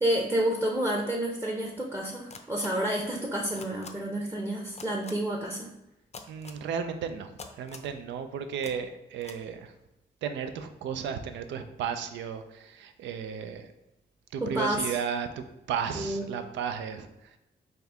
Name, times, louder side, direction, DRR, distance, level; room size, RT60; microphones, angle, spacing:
voice 1, 0.0-5.7 14.4-14.9 16.0-16.2, right 1 dB, 15° right, -1 dB, 0.7 m, -29 dB
sound 1, 2.3-2.7 3.6-3.9 4.8-5.1 6.1-6.6 7.4-7.9 8.6-8.7 9.2-9.4, left 5 dB, 35° left, 0.5 m, -44 dB
voice 2, 6.3-9.7 10.2-13.7 14.3-17.1, right 7 dB, 85° right, 9 dB, 0.4 m, -34 dB
4.1 x 2.4 x 3.4 m, 0.91 s
cardioid pair, 60°, 18 cm